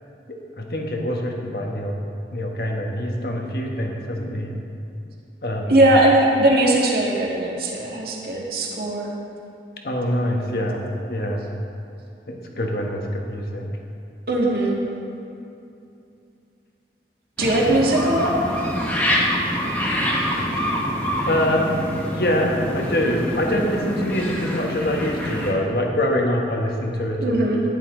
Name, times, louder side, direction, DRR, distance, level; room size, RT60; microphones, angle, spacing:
voice 1, 0.3-2.0 2.3-4.6 5.4-5.8 9.8-11.5 12.3-13.7 21.2-21.6 22.1-27.4, left 1 dB, 60° left, 0 dB, 1.5 m, -24 dB
voice 2, 5.7-9.2 14.3-14.8 17.4-18.3 27.2-27.6, right 1 dB, 55° right, -3 dB, 2.1 m, -19 dB
sound 1, 17.4-25.5, equal, 10° left, 1.5 m, -25 dB
14.5 x 11.0 x 4.0 m, 2.7 s
head